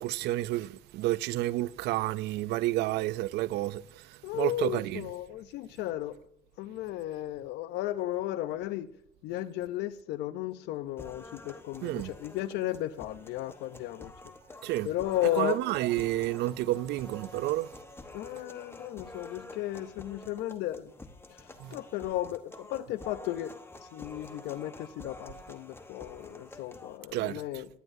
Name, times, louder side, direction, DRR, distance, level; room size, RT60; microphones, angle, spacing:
voice 1, 0.0-5.1 11.8-12.1 14.6-14.9 15.4-17.7 21.6-21.7 27.1-27.6, right 16 dB, 80° right, 0.5 m, -30 dB
voice 2, 4.2-6.2 6.6-8.9 9.2-14.1 14.8-15.6 18.1-20.9 21.7-23.5 23.9-27.7, left 14 dB, 90° left, 0.7 m, -34 dB
sound 1, 11.0-27.0, left 2 dB, 15° left, 1.1 m, -48 dB
17.0 x 11.0 x 2.7 m
cardioid pair, 110°, 17 cm